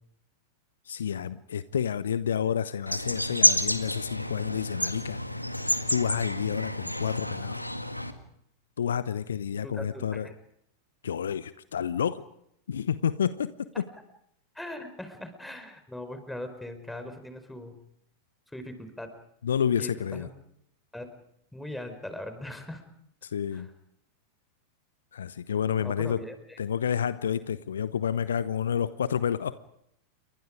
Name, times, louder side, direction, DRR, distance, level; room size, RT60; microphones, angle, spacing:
voice 1, 0.9-5.2 5.9-7.6 8.8-10.3 11.0-12.2 12.7-13.8 19.4-20.3 23.2-23.7 25.1-26.2 26.6-29.6, left 8 dB, 65° left, 16 dB, 0.9 m, -29 dB
sound 1, 2.9-8.1, left 1 dB, 90° left, 1.9 m, -29 dB
voice 2, 14.5-17.8 18.5-19.1 19.8-20.3 20.9-21.1 21.5-22.8 23.5-23.7 25.8-26.6, left 1 dB, 5° left, 8 dB, 4.5 m, -40 dB
29.5 x 24.0 x 5.1 m, 0.75 s
figure-of-eight pair, 90°, 0 cm